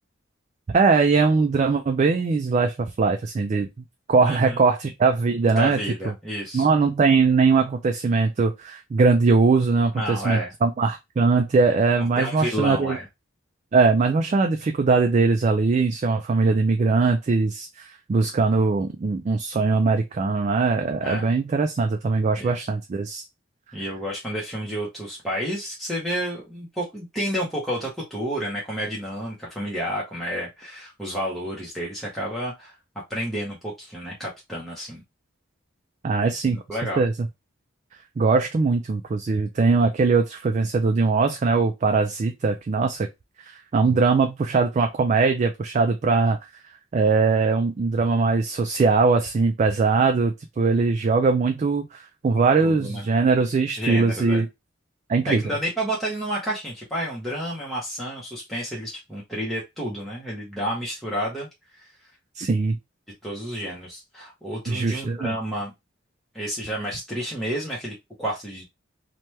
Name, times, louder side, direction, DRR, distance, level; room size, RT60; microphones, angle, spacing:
voice 1, 0.7-3.7 4.1-6.1 6.5-13.0 13.7-23.2 36.0-36.6 37.0-37.1 38.2-43.1 43.4-46.4 46.9-54.5 55.1-55.4 62.4-62.8 64.7-65.3, right 4 dB, 35° right, 5 dB, 0.3 m, -21 dB
voice 2, 4.2-4.6 5.5-6.7 9.9-10.5 12.2-13.0 21.0-21.3 22.4-22.7 23.7-32.7 33.1-35.0 36.2-37.1 52.6-53.1 53.8-54.4 55.3-61.9 63.2-65.7 66.3-68.7, equal, ahead, -5 dB, 0.8 m, -30 dB
2.9 x 2.2 x 3.0 m, 0.21 s
head